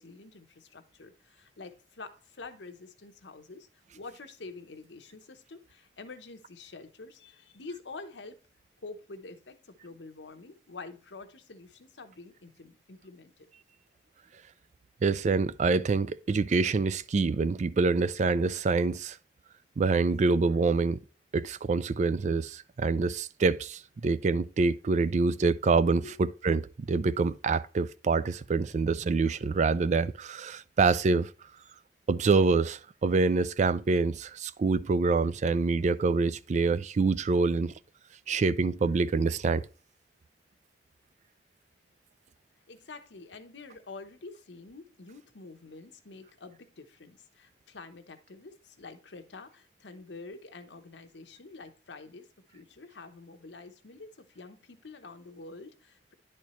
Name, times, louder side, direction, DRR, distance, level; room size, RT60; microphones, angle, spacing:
voice 1, 0.0-8.4 8.8-13.5 26.0-26.2 28.7-28.8 42.7-56.1, left 3 dB, 85° left, 0.9 m, -47 dB
voice 2, 15.0-19.2 19.8-21.0 21.3-31.3 32.1-37.7 38.3-39.6, right 4 dB, 40° right, 0.3 m, -26 dB
10.5 x 4.4 x 3.1 m
head